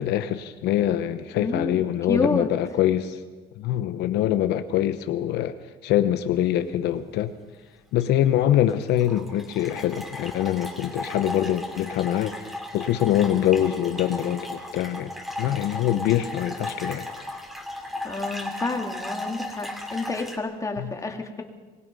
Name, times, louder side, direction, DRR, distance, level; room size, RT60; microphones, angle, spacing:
voice 1, 0.0-3.2 3.6-5.5 5.8-7.3 7.9-12.3 12.7-15.1 15.4-17.1 20.8-20.9, left 11 dB, 80° left, 10 dB, 1.0 m, -24 dB
voice 2, 1.4-2.5 18.0-21.4, left 3 dB, 20° left, 3 dB, 2.6 m, -29 dB
sound 1, 8.0-8.3 8.7-20.4, left 1 dB, ahead, 2.7 m, -36 dB
25.0 x 20.5 x 5.5 m, 1.3 s
cardioid pair, 110°, 17 cm